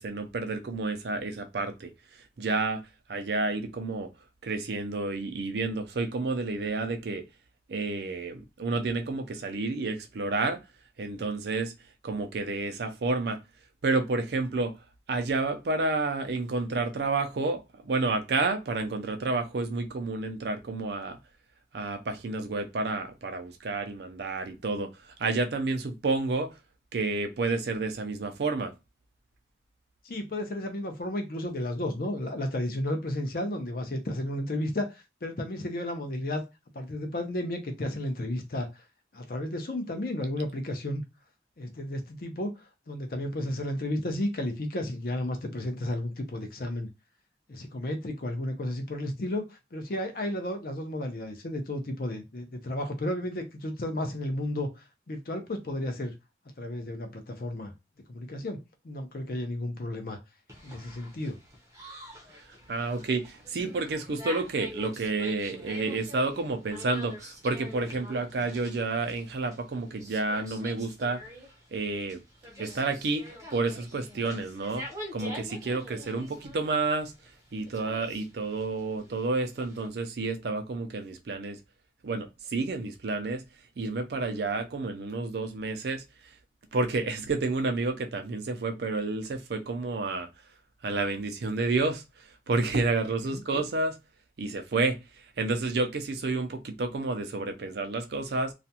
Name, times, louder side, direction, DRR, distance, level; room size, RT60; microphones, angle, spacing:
voice 1, 0.0-1.9 2.4-4.1 4.4-7.2 7.7-10.6 11.0-11.7 12.0-13.4 13.8-14.8 15.1-21.2 21.7-24.9 25.2-26.5 26.9-28.7 62.7-71.2 71.7-72.2 72.6-74.8 75.1-77.1 77.5-81.6 82.0-83.4 83.8-86.0 86.7-90.3 90.8-92.0 92.5-94.0 94.4-95.0 95.4-98.5, right 3 dB, 70° right, 0.4 m, -30 dB
voice 2, 30.0-36.4 36.7-38.8 39.1-41.0 41.6-46.9 47.5-54.7 55.1-56.1 56.6-57.7 58.1-58.6 58.8-60.2 60.6-61.4 93.3-93.4, left 1 dB, 55° left, 0.5 m, -33 dB
sound 1, 60.5-79.9, equal, 20° right, 0.6 m, -45 dB
2.4 x 2.2 x 2.7 m
head